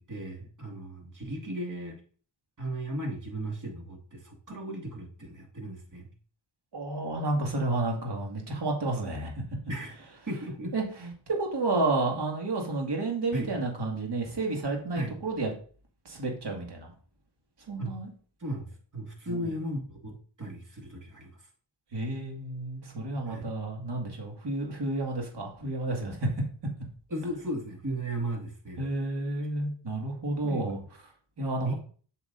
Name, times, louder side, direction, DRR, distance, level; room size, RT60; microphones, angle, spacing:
voice 1, 0.0-1.9 2.6-6.1 9.7-10.0 10.3-10.7 13.3-13.5 14.9-15.1 17.8-18.0 18.4-18.7 18.9-20.1 20.4-21.3 23.3-23.4 27.1-28.8 29.4-29.5 30.4-30.7 31.6-31.7, right 1 dB, 45° right, 1 dB, 2.2 m, -35 dB
voice 2, 6.7-9.4 10.7-15.5 16.1-16.9 17.7-18.1 19.3-19.5 21.9-26.3 28.8-30.8 31.4-31.7, right 2 dB, 65° right, 1 dB, 2.2 m, -31 dB
8.4 x 5.8 x 2.6 m, 0.42 s
cardioid pair, 70°, 44 cm